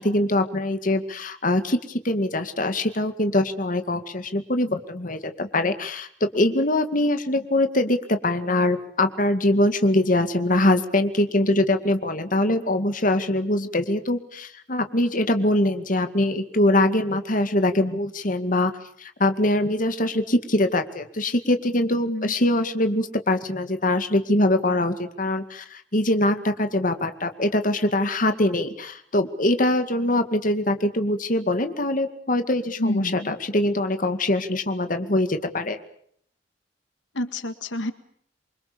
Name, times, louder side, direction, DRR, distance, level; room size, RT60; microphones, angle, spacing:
voice 1, 0.0-6.1 6.3-18.7 19.0-35.8, left 1 dB, 45° left, 8 dB, 2.2 m, -23 dB
voice 2, 32.8-33.3 37.2-37.9, left 1 dB, 85° left, 10 dB, 2.0 m, -28 dB
27.5 x 24.5 x 7.0 m, 0.65 s
head